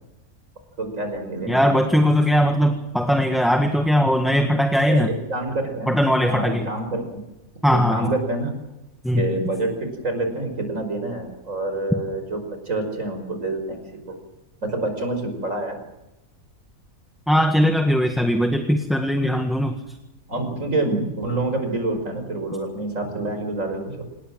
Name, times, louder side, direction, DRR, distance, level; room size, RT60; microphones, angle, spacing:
voice 1, 0.8-1.8 4.9-5.9 6.3-7.2 7.7-8.5 9.2-14.1 14.6-15.8 20.3-24.0, right 2 dB, 60° right, 6 dB, 5.8 m, -27 dB
voice 2, 1.5-5.1 5.9-6.7 7.6-8.1 9.0-9.3 17.3-19.8, equal, ahead, 5 dB, 1.6 m, -19 dB
27.0 x 20.5 x 7.6 m, 0.94 s
omnidirectional pair, 1.5 m